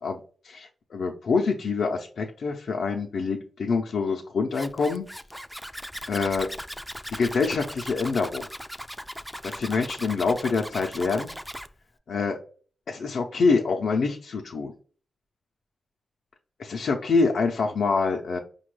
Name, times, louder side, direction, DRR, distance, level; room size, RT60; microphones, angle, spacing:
voice 1, 0.0-5.1 6.1-6.5 7.1-8.4 9.4-11.3 12.1-12.4 12.9-14.7 16.6-18.4, left 4 dB, 75° left, 1 dB, 0.5 m, -26 dB
Zipper (clothing), 4.5-11.7, equal, ahead, 0.3 m, -38 dB
5.0 x 2.2 x 3.1 m, 0.41 s
cardioid pair, 60°, 0 cm